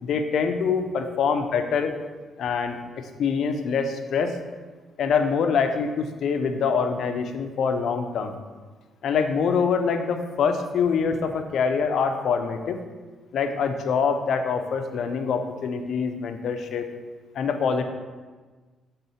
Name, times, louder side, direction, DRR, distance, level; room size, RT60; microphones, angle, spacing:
voice 1, 0.0-2.0 2.4-4.4 5.0-8.4 9.0-12.8 13.3-16.9 17.3-17.8, left 6 dB, 70° left, 6 dB, 0.6 m, -25 dB
6.7 x 3.7 x 4.2 m, 1.4 s
cardioid pair, 90°, 0 cm